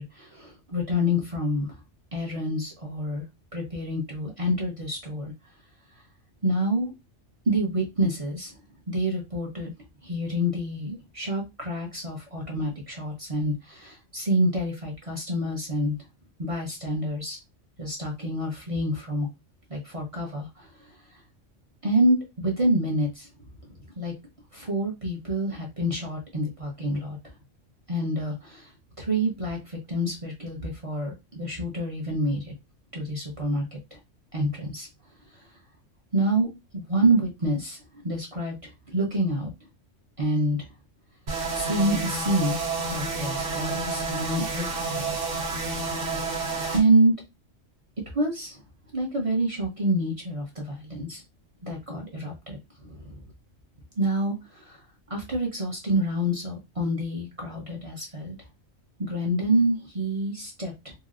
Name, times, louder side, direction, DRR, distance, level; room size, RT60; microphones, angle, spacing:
voice 1, 0.0-1.8 2.1-3.2 3.5-5.3 6.4-6.9 7.5-8.5 8.9-9.7 10.0-16.0 16.4-17.4 17.8-19.3 19.7-20.7 21.8-23.3 24.0-24.1 24.5-27.2 27.9-28.7 29.0-32.5 32.9-34.0 34.3-34.9 36.1-36.5 36.7-39.5 40.2-40.7 41.5-42.6 42.9-45.1 46.7-47.1 48.1-48.6 48.9-51.2 51.6-53.2 54.0-54.8 55.1-58.4 59.0-60.9, right 1 dB, 30° right, -2 dB, 0.7 m, -27 dB
sound 1, 41.3-46.8, right 3 dB, 65° right, 1.4 m, -30 dB
4.1 x 2.0 x 2.4 m, 0.23 s
omnidirectional pair, 1.3 m